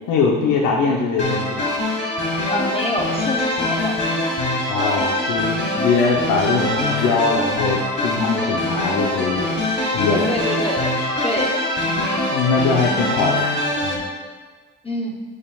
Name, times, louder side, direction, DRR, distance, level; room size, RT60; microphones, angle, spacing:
voice 1, 0.1-1.7 4.7-9.5 9.9-10.3 12.3-13.4 13.8-14.1, left 4 dB, 85° left, -1 dB, 0.8 m, -21 dB
sound 1, 1.2-14.0, left 1 dB, 40° left, 2.0 m, -23 dB
voice 2, 2.5-4.2 10.3-10.9 11.2-11.5 11.8-12.1 14.8-15.2, left 1 dB, 20° left, 0 dB, 0.8 m, -26 dB
9.6 x 5.5 x 2.3 m, 1.4 s
cardioid pair, 90°, 30 cm